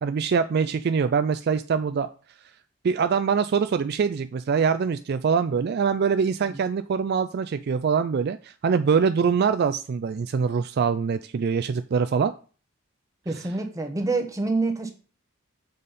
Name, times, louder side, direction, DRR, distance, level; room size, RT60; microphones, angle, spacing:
voice 1, 0.0-2.1 2.8-12.3, right 6 dB, 50° right, 10 dB, 0.3 m, -24 dB
voice 2, 13.2-14.9, right 3 dB, 15° right, 4 dB, 1.0 m, -27 dB
7.6 x 5.2 x 4.1 m, 0.38 s
head